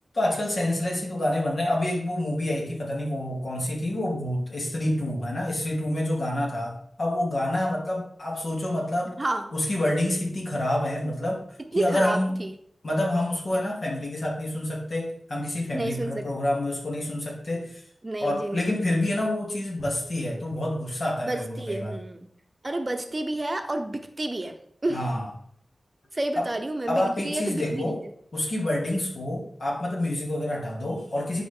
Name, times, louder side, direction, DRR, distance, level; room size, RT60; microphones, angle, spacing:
voice 1, 0.1-9.2 9.5-11.4 11.7-12.4 12.8-17.8 18.2-21.9 24.9-25.3 26.4-26.5 26.9-28.0 28.3-31.4, left 1 dB, 60° left, -2 dB, 2.9 m, -27 dB
voice 2, 11.7-12.5 15.7-16.3 18.0-18.7 21.2-22.3 22.6-25.0 26.1-27.9, right 2 dB, 30° right, 6 dB, 0.9 m, -30 dB
11.0 x 5.3 x 3.8 m, 0.62 s
wide cardioid pair, 90°, 0 cm